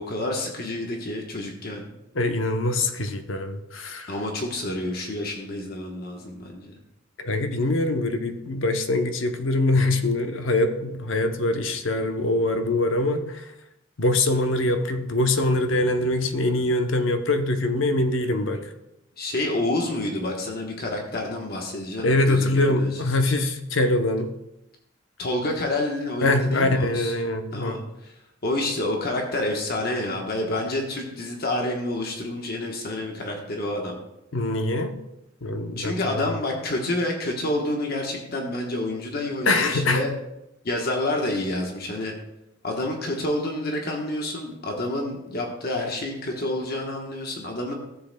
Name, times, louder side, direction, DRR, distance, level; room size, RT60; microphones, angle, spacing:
voice 1, 0.0-1.8 4.1-6.7 19.2-22.9 25.2-27.1 27.5-28.1 28.4-33.9 35.8-40.1 40.6-42.1 42.6-47.7, left 1 dB, 55° left, 1 dB, 1.1 m, -28 dB
voice 2, 2.1-4.1 7.2-13.5 14.0-18.7 22.0-24.3 26.2-27.8 34.3-35.0 35.4-36.3 39.5-40.0, left 2 dB, 90° left, 7 dB, 0.8 m, -23 dB
14.0 x 7.7 x 2.2 m, 0.88 s
head